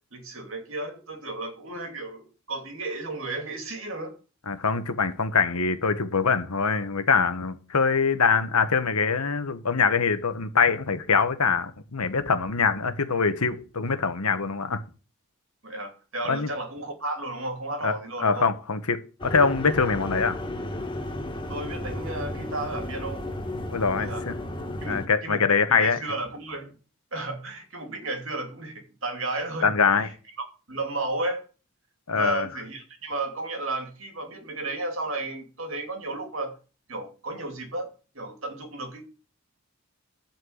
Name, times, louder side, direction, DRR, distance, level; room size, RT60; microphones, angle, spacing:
voice 1, 0.1-4.1 15.6-18.5 21.5-23.3 24.0-24.2 24.8-26.8 27.1-30.1 30.7-31.4 32.1-36.5 36.9-37.9 38.1-39.0, right 2 dB, 60° right, 2.5 m, -33 dB
voice 2, 4.5-14.8 16.3-16.5 17.8-17.9 18.2-20.4 23.7-24.4 24.9-26.0 29.6-30.1 32.1-32.5, left 5 dB, 85° left, 1.2 m, -24 dB
sound 1, 19.2-25.1, left 1 dB, 20° left, 1.1 m, -33 dB
11.0 x 4.5 x 7.9 m
head